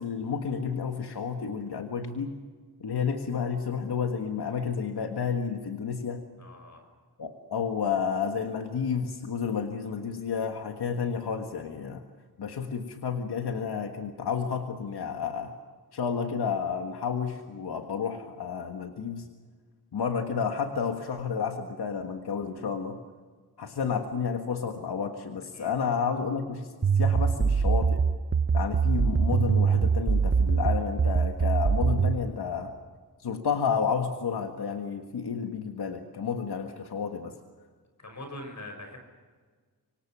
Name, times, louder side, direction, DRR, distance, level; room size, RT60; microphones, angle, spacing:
voice 1, 0.0-2.3 2.8-6.2 7.2-12.0 12.4-15.5 15.9-19.3 19.9-23.0 23.6-28.0 28.5-32.7 33.2-37.3, left 6 dB, 85° left, 4 dB, 1.7 m, -31 dB
voice 2, 6.4-6.9 25.5-25.9 38.0-39.0, left 1 dB, 45° left, 4 dB, 6.2 m, -43 dB
sound 1, 26.8-32.2, right 5 dB, 30° right, 0.8 m, -23 dB
26.0 x 25.5 x 6.2 m, 1.5 s
wide cardioid pair, 170°, 38 cm